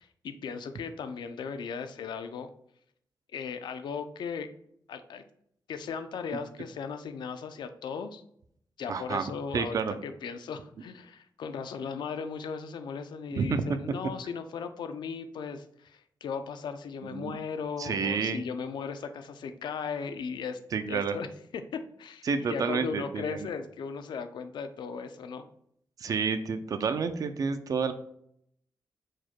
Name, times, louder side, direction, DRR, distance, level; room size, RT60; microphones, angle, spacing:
voice 1, 0.0-2.5 3.3-4.5 4.9-5.2 5.7-8.2 8.8-20.6 20.9-21.3 21.5-25.4, left 6 dB, 75° left, 8 dB, 0.4 m, -37 dB
voice 2, 8.9-9.9 13.4-14.0 17.1-17.4 17.8-18.4 20.7-21.2 22.2-23.5 26.0-27.9, right 5 dB, 50° right, 9 dB, 0.4 m, -30 dB
4.7 x 2.2 x 4.3 m, 0.70 s
wide cardioid pair, 150°, 8 cm